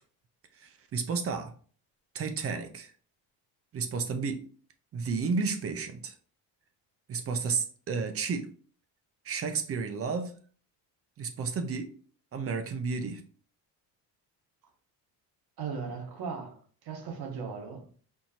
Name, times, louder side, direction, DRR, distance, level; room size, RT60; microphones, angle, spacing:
voice 1, 0.6-1.5 2.1-2.9 3.7-4.4 4.9-6.1 7.1-8.5 9.2-10.3 11.2-11.9 12.3-13.2, right 5 dB, 35° right, 0.5 m, -32 dB
voice 2, 15.6-17.9, right 5 dB, 65° right, 1.2 m, -38 dB
4.4 x 2.6 x 2.8 m
cardioid pair, 130°, 41 cm